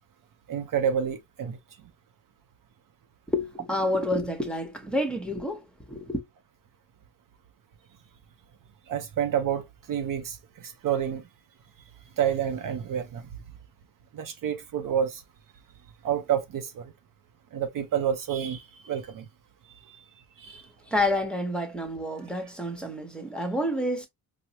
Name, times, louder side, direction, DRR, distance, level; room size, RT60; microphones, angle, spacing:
voice 1, 0.5-1.6 8.9-11.2 12.2-13.3 14.1-15.2 16.0-16.9 17.5-19.3 19.9-20.0 20.4-20.7, right 9 dB, 55° right, 0.6 m, -29 dB
voice 2, 3.3-6.2 20.9-24.1, left 1 dB, ahead, 0.9 m, -29 dB
4.5 x 2.1 x 2.8 m
cardioid pair, 100°, 39 cm